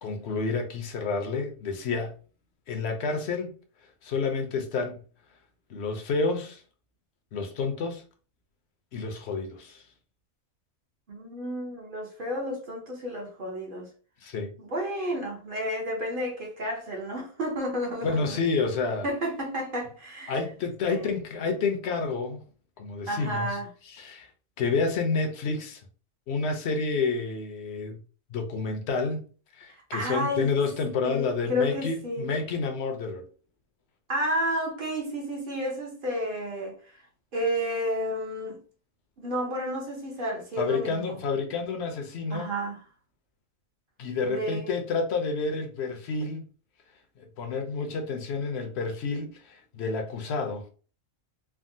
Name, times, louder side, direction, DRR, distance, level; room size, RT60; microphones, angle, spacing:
voice 1, 0.0-2.1 2.7-3.5 4.0-5.0 5.7-6.6 7.3-8.0 8.9-9.8 14.2-14.5 18.0-19.1 20.3-22.4 22.8-23.6 23.8-24.3 24.6-25.8 26.3-28.0 28.3-29.2 29.5-33.2 40.6-42.5 44.0-46.5 47.2-50.7, left 4 dB, 65° left, 0.7 m, -29 dB
voice 2, 11.1-13.9 14.6-18.4 19.0-20.3 20.9-21.0 23.1-23.7 29.7-30.5 31.0-32.3 34.1-36.8 37.3-38.6 39.2-41.2 42.3-42.8 44.2-44.8, equal, 50° right, 0.8 m, -31 dB
3.4 x 2.1 x 2.6 m
omnidirectional pair, 1.4 m